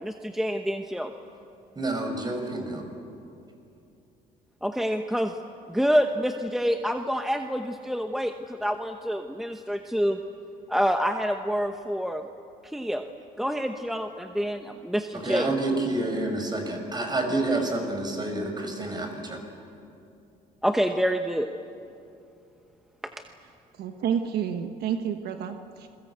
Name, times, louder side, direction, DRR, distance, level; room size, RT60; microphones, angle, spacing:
voice 1, 0.0-1.1 4.6-5.3 5.7-10.2 10.7-12.2 12.7-13.0 13.4-15.5 20.6-21.5, equal, ahead, 5 dB, 1.0 m, -27 dB
voice 2, 1.8-2.8 15.2-19.4, right 2 dB, 25° right, 4 dB, 5.8 m, -28 dB
voice 3, 23.8-25.9, right 8 dB, 70° right, 6 dB, 1.3 m, -29 dB
28.0 x 22.0 x 8.2 m, 2.6 s
cardioid pair, 110°, 17 cm